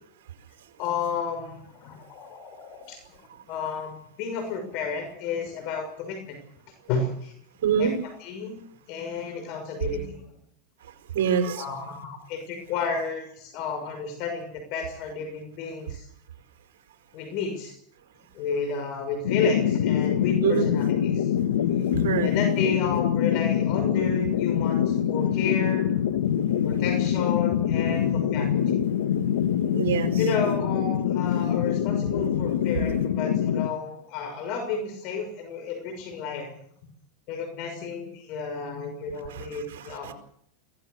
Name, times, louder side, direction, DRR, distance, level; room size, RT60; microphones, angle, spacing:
voice 1, 0.8-3.2 3.5-6.4 6.9-7.3 7.8-7.9 8.2-8.6 8.9-10.2 11.6-16.1 17.1-17.8 18.3-21.3 22.2-25.9 26.6-28.8 30.2-36.5 37.3-40.1, left 5 dB, 55° left, 7 dB, 6.1 m, -32 dB
voice 2, 7.6-7.9 11.1-11.6 20.4-20.7 22.0-22.3 26.6-26.8 29.0-29.1 29.7-30.1 39.3-40.1, right 7 dB, 70° right, 5 dB, 4.9 m, -26 dB
sound 1, 19.2-33.7, left 9 dB, 80° left, 1.5 m, -24 dB
23.0 x 18.0 x 6.8 m, 0.69 s
hypercardioid pair, 110°, 0 cm